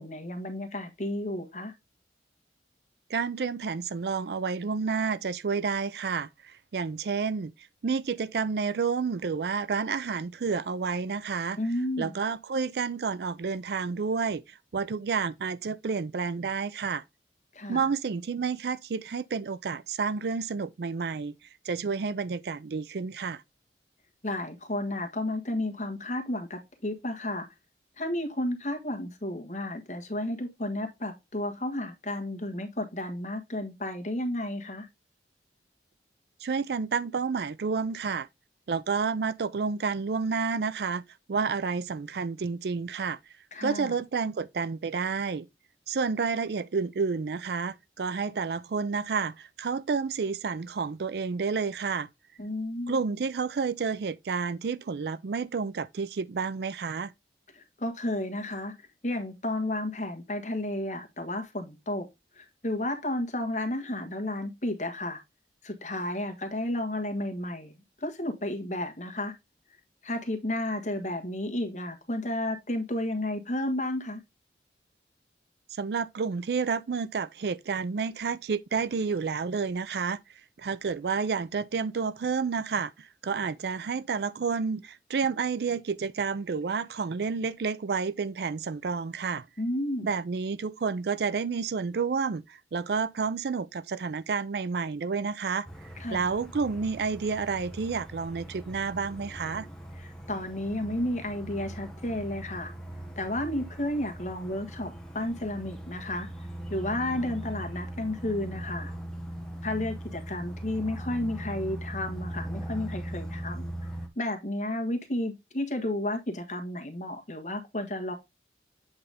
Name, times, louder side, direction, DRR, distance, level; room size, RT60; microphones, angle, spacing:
voice 1, 0.0-1.7 11.6-12.1 17.5-17.9 24.2-27.5 28.0-34.9 43.5-44.0 52.4-53.0 57.5-62.1 62.3-65.2 65.6-67.7 68.0-69.3 70.0-74.2 89.6-90.1 96.0-96.3 99.9-102.7 103.2-106.3 106.7-108.9 109.6-113.7 114.1-118.1, left 1 dB, 40° left, 1.3 m, -32 dB
voice 2, 3.1-7.5 7.8-11.6 12.0-17.0 17.7-21.3 21.6-23.4 36.4-38.3 38.7-41.0 41.3-43.2 43.6-45.5 45.9-52.1 52.9-57.1 75.7-80.2 80.6-89.4 90.0-95.7 96.1-99.7, right 5 dB, 70° right, 0.4 m, -30 dB
sound 1, 95.7-114.1, right 1 dB, 5° left, 1.0 m, -40 dB
7.9 x 4.0 x 3.4 m
head